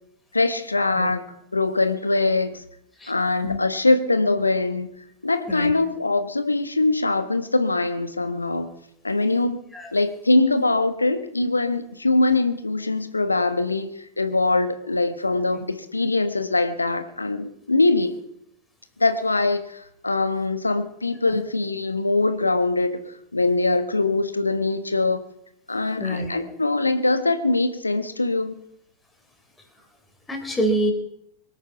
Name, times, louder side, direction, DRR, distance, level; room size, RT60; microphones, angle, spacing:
voice 1, 0.3-1.2 1.5-2.6 3.1-4.9 5.2-8.7 9.0-9.6 9.9-13.9 14.2-18.2 19.0-23.0 23.3-25.2 25.7-28.6, left 2 dB, 80° left, 10 dB, 1.3 m, -22 dB
voice 2, 26.0-26.4 30.3-30.9, right 1 dB, 10° left, 4 dB, 3.7 m, -26 dB
24.0 x 8.9 x 5.8 m, 0.76 s
figure-of-eight pair, 90°, 0 cm